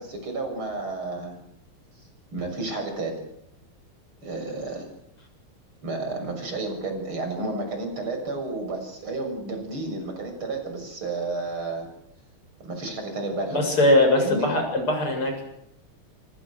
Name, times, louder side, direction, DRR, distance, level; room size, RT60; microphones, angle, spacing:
voice 1, 0.0-1.4 2.3-3.3 4.2-4.9 5.8-11.9 12.6-13.7 14.2-14.5, right 2 dB, 75° right, 5 dB, 7.6 m, -31 dB
voice 2, 13.5-15.4, left 1 dB, 85° left, 4 dB, 8.3 m, -21 dB
26.5 x 25.5 x 6.6 m, 0.76 s
omnidirectional pair, 2.3 m